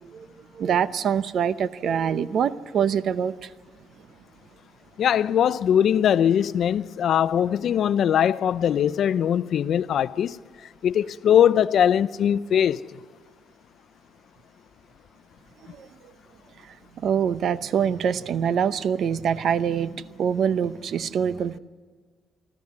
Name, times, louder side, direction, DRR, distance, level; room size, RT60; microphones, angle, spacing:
voice 1, 0.0-3.5 15.7-15.9 16.6-21.6, right 8 dB, 65° right, 0.8 m, -25 dB
voice 2, 5.0-10.4 10.8-12.8, left 9 dB, 65° left, 0.6 m, -21 dB
25.5 x 14.5 x 9.6 m
cardioid pair, 90°, 0 cm